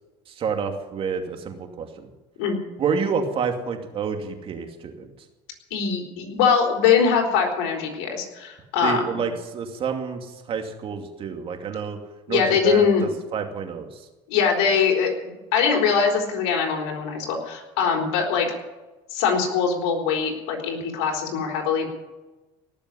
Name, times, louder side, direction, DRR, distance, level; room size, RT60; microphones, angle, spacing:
voice 1, 0.3-2.1 2.8-5.1 8.8-12.0 12.3-14.1, right 6 dB, 45° right, 4 dB, 2.6 m, -28 dB
voice 2, 5.7-9.0 12.3-13.1 14.3-18.5 19.1-21.9, left 6 dB, 85° left, 1 dB, 3.9 m, -22 dB
18.5 x 7.0 x 9.9 m, 1.1 s
supercardioid pair, 105°, 13 cm